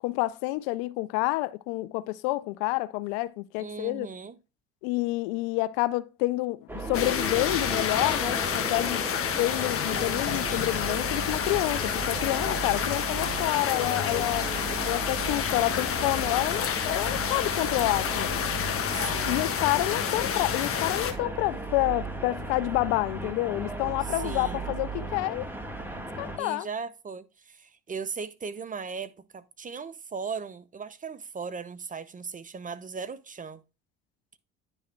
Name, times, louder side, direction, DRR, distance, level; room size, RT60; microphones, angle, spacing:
voice 1, 0.0-4.1 4.8-9.0 9.4-14.5 14.8-18.5 19.2-25.5 26.2-26.7, left 19 dB, 70° left, 0.5 m, -28 dB
voice 2, 3.6-4.4 9.9-10.6 18.9-19.5 24.2-24.7 26.4-33.6, right 5 dB, 25° right, 0.7 m, -38 dB
sound 1, 6.7-26.4, right 2 dB, 5° right, 1.5 m, -36 dB
sound 2, 6.9-21.1, left 8 dB, 45° left, 1.2 m, -29 dB
9.8 x 3.5 x 4.4 m
hypercardioid pair, 60°, 33 cm